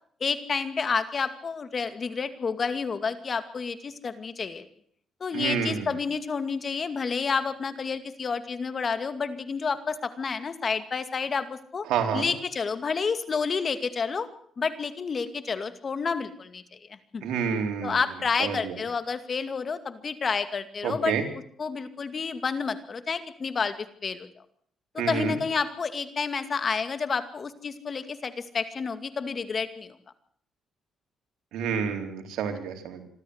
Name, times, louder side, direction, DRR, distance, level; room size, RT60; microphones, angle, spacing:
voice 1, 0.2-4.7 5.2-11.9 12.1-14.3 14.6-17.3 17.8-21.2 21.6-23.8 24.0-24.3 24.9-30.0, left 5 dB, 40° left, 11 dB, 2.3 m, -30 dB
voice 2, 5.3-5.9 11.9-12.3 17.2-18.0 18.4-18.8 20.8-21.2 25.0-25.4 31.5-33.0, right 7 dB, 85° right, 4 dB, 3.9 m, -29 dB
26.5 x 13.5 x 8.1 m, 0.62 s
cardioid pair, 90°, 0 cm